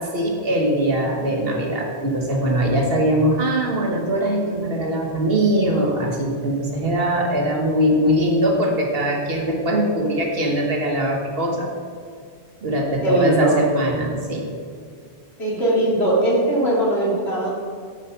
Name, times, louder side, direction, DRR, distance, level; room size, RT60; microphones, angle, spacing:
voice 1, 0.0-11.7 12.6-14.5, right 1 dB, 60° right, 1 dB, 1.5 m, -21 dB
voice 2, 13.0-13.7 15.4-17.5, right 1 dB, 65° left, -4 dB, 2.9 m, -20 dB
13.5 x 5.1 x 5.7 m, 2.1 s
omnidirectional pair, 1.2 m